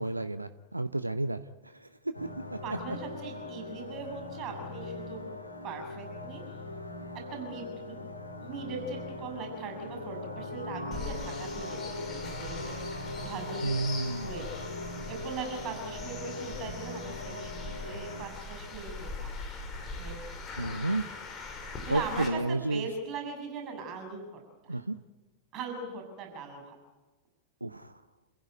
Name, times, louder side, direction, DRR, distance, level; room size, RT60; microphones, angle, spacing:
voice 1, 0.0-2.1 2.5-2.6 13.6-14.3 20.6-21.0 21.9-22.9 24.7-25.0 27.6-27.9, right 2 dB, 85° right, 13 dB, 0.7 m, -31 dB
sound 1, 2.1-18.2, left 2 dB, 80° left, 2.6 m, -40 dB
voice 2, 2.6-5.2 5.6-6.4 7.3-8.0 8.4-13.7 14.1-14.5 15.1-19.4 20.0-20.2 21.9-24.8 25.5-26.8, right 4 dB, 35° right, 2 dB, 7.0 m, -40 dB
sound 2, 10.9-22.3, left 3 dB, 25° left, 5.7 m, -41 dB
29.5 x 15.5 x 9.3 m, 1.2 s
figure-of-eight pair, 90°, 0 cm